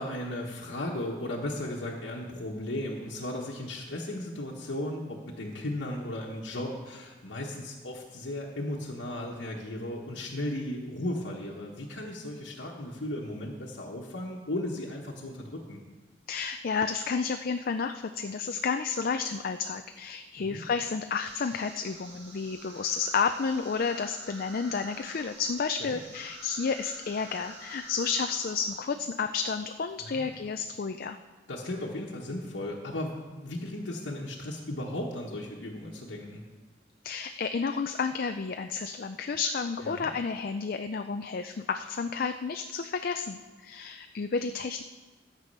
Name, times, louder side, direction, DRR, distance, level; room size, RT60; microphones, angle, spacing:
voice 1, 0.0-15.8 20.4-20.6 25.8-26.0 30.0-30.3 31.5-36.4 39.8-40.1, left 1 dB, 85° left, -4 dB, 1.3 m, -36 dB
voice 2, 16.3-31.2 37.0-44.8, left 5 dB, 55° left, 7 dB, 0.4 m, -31 dB
sound 1, 21.2-28.8, right 2 dB, 70° right, 2.4 m, -48 dB
13.0 x 7.6 x 5.5 m, 1.3 s
head